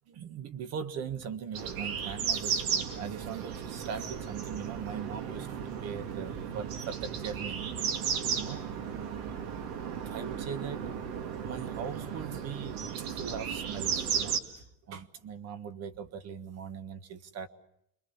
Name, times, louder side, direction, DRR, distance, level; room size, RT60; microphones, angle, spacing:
voice 1, 0.1-9.4 10.1-11.1 11.3-17.5, right 7 dB, 40° right, 11 dB, 1.4 m, -41 dB
sound 1, 1.5-14.4, right 7 dB, 70° right, 2.5 m, -35 dB
27.5 x 23.0 x 7.2 m, 0.76 s
cardioid pair, 170°, 37 cm